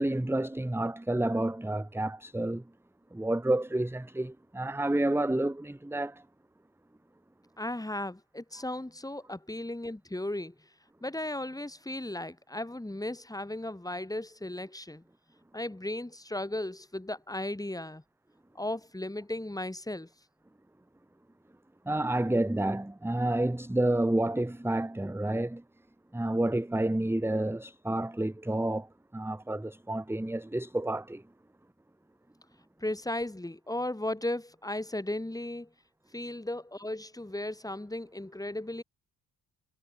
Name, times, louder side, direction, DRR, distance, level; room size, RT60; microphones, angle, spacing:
voice 1, 0.0-2.6 3.1-6.2 21.8-25.6 26.1-31.2, right 1 dB, 5° right, 1.5 m, -29 dB
voice 2, 7.6-10.5 11.0-15.0 15.5-18.0 18.6-20.1 32.8-35.7 36.1-38.8, left 1 dB, 10° left, 3.6 m, -36 dB
cardioid pair, 95°, 38 cm